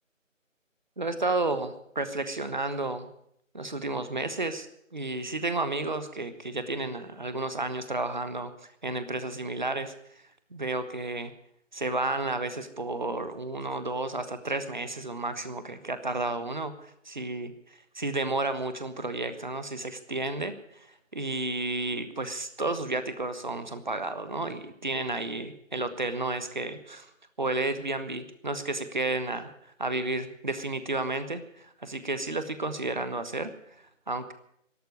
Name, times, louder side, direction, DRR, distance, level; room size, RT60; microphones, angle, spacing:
voice 1, 1.0-3.1 3.5-4.7 4.9-9.9 10.5-11.3 11.7-27.1 27.4-29.5 29.8-33.5 34.1-34.3, right 2 dB, 35° right, 11 dB, 1.2 m, -32 dB
12.0 x 12.0 x 9.5 m, 0.73 s
figure-of-eight pair, 165°, 40 cm